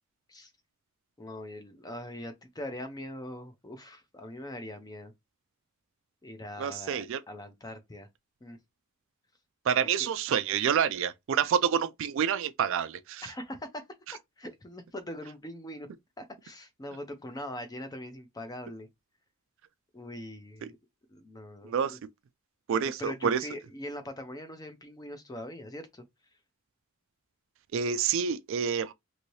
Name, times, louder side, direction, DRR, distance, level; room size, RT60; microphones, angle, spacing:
voice 1, 1.2-5.1 6.2-8.1 8.4-8.6 9.8-10.1 13.2-13.8 14.4-15.9 16.2-18.9 19.9-20.8 21.1-22.0 22.7-26.0, left 1 dB, 20° left, 0.5 m, -42 dB
voice 2, 6.6-7.2 9.7-13.2 20.6-20.7 21.6-22.0 22.7-23.4 27.7-28.9, right 7 dB, 60° right, 0.3 m, -28 dB
2.7 x 2.7 x 3.0 m
head